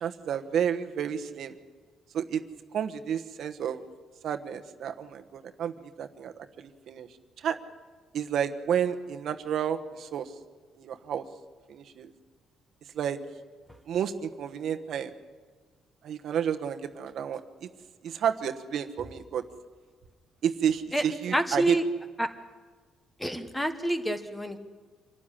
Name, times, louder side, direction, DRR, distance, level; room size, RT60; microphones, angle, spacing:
voice 1, 0.0-1.6 2.1-2.4 2.7-3.8 4.2-7.1 7.4-7.6 8.1-10.3 10.8-11.2 11.7-12.1 12.9-13.2 13.9-15.1 16.0-17.7 18.0-19.4 20.4-21.8, right 8 dB, 60° right, 7 dB, 1.2 m, -31 dB
voice 2, 21.3-21.8 22.2-22.3 23.2-24.6, right 1 dB, 5° left, 9 dB, 1.3 m, -28 dB
26.0 x 13.0 x 9.9 m, 1.5 s
cardioid pair, 145°, 0 cm